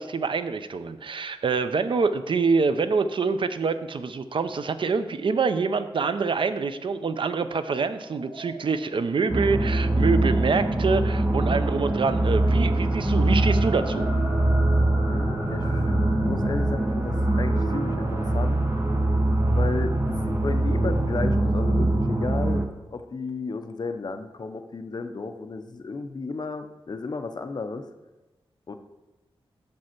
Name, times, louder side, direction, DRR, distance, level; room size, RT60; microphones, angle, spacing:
voice 1, 0.0-14.1, right 4 dB, 60° right, 11 dB, 0.5 m, -26 dB
sound 1, 7.8-20.2, equal, 90° right, 2.4 m, -43 dB
sound 2, 9.3-22.7, right 1 dB, 25° right, 0.8 m, -23 dB
voice 2, 15.1-16.0 16.2-18.7 19.5-27.9 28.7-28.8, left 4 dB, 45° left, 7 dB, 0.6 m, -33 dB
6.9 x 5.3 x 5.8 m, 1.1 s
wide cardioid pair, 135°, 10 cm